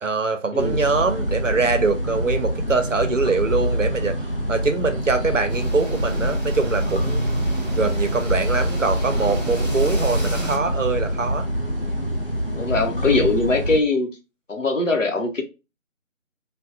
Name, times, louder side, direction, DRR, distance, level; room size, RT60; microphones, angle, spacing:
voice 1, 0.0-4.1 4.5-7.3 7.8-11.5, right 4 dB, 70° right, 0.7 m, -23 dB
sound 1, 0.6-13.8, equal, 45° left, 0.4 m, -26 dB
sound 2, 5.5-10.6, right 1 dB, 35° right, 0.7 m, -28 dB
voice 2, 12.5-14.2 14.5-15.4, left 3 dB, 70° left, 0.9 m, -21 dB
3.3 x 2.2 x 2.5 m
figure-of-eight pair, 165°, 40 cm